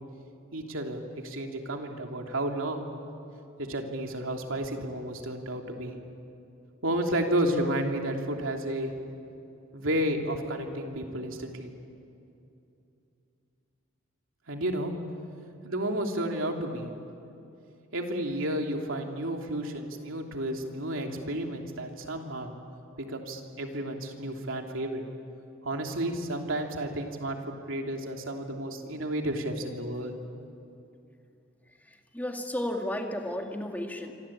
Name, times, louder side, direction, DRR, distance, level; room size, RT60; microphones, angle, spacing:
voice 1, 0.5-2.8 3.6-5.9 6.8-8.9 9.7-11.7 14.5-14.9 15.6-16.9 17.9-22.5 23.0-25.0 25.6-30.1, right 1 dB, 75° right, 2 dB, 3.0 m, -32 dB
voice 2, 31.9-34.1, left 1 dB, 10° left, 3 dB, 2.2 m, -33 dB
26.0 x 26.0 x 8.8 m, 2.7 s
head